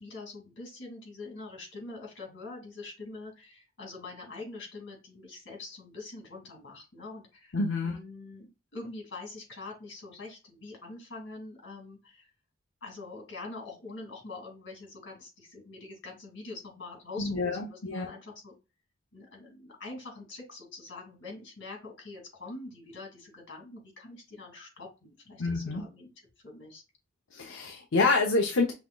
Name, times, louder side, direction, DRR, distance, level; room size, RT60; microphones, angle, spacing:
voice 1, 0.0-7.6 7.8-12.3 12.8-18.5 19.1-26.1 26.4-26.8, left 3 dB, 60° left, -1 dB, 2.7 m, -44 dB
voice 2, 7.5-8.0 17.2-18.1 25.4-25.8 27.3-28.7, left 3 dB, 80° left, 2 dB, 0.8 m, -27 dB
5.8 x 3.6 x 2.3 m, 0.28 s
head